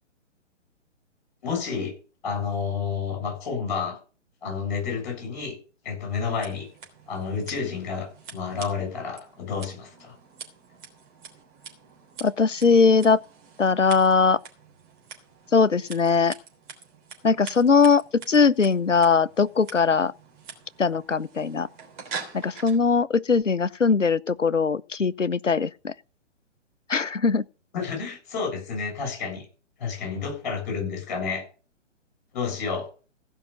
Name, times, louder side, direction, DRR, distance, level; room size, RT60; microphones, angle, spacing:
voice 1, 1.4-1.9 2.2-4.0 4.4-5.6 5.8-6.7 7.1-10.2 27.7-29.5 29.8-31.4 32.3-32.9, left 5 dB, 40° left, 7.6 m, -30 dB
Scissors, 6.2-22.8, right 5 dB, 40° right, 3.3 m, -45 dB
voice 2, 12.2-13.2 13.6-14.4 15.5-16.3 17.2-20.1 20.8-21.7 22.4-25.9 26.9-27.4, left 5 dB, 90° left, 0.7 m, -20 dB
15.5 x 5.7 x 7.1 m
figure-of-eight pair, 125°, 36 cm